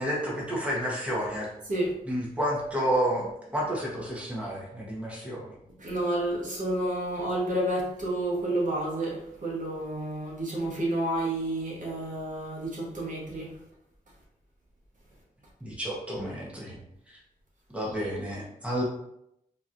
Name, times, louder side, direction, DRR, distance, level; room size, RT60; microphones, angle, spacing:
voice 1, 0.0-1.5 2.1-5.6 15.6-16.8 17.1-17.2 17.7-18.8, equal, 10° right, -4 dB, 1.0 m, -30 dB
voice 2, 5.8-13.5, right 1 dB, 55° right, -4 dB, 1.2 m, -30 dB
3.9 x 2.9 x 2.5 m, 0.79 s
wide cardioid pair, 90°, 16 cm